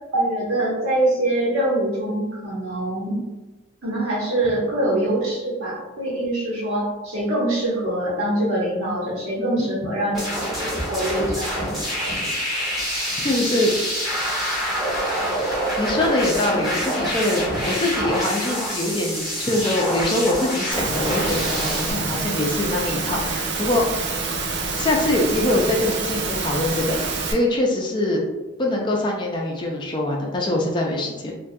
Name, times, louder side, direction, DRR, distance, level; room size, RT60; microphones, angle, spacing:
voice 1, 0.1-3.2 3.8-10.3 10.9-11.5, right 1 dB, 90° right, -6 dB, 1.0 m, -24 dB
sound 1, 10.1-21.9, equal, ahead, 0.7 m, -26 dB
voice 2, 13.2-13.7 15.8-23.9 24.8-27.0 27.3-28.2 28.6-31.3, left 1 dB, 25° left, -1 dB, 0.3 m, -23 dB
Engine / Mechanisms, 20.7-27.3, right 4 dB, 55° right, 0.4 m, -27 dB
2.3 x 2.2 x 2.6 m, 1.1 s
head